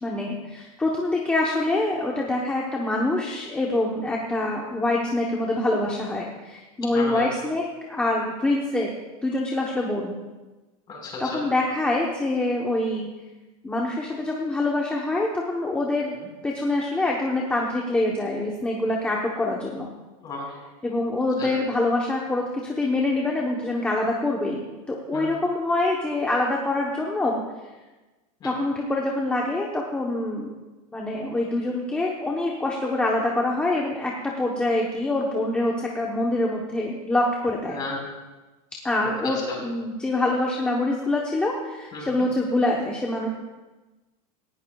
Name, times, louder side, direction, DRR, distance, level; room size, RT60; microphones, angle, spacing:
voice 1, 0.0-8.9 9.2-10.2 11.2-13.1 13.6-16.2 16.4-19.9 20.8-27.4 28.4-30.5 30.9-37.8 38.8-43.3, left 2 dB, 5° left, -2 dB, 0.9 m, -25 dB
voice 2, 6.9-7.4 10.9-11.4 20.2-20.6 21.4-21.5 25.1-25.3 28.4-28.5 37.7-38.0 39.2-39.6 41.9-42.1, left 3 dB, 20° left, -2 dB, 4.5 m, -33 dB
18.5 x 16.0 x 2.3 m, 1.2 s
supercardioid pair, 170°, 19 cm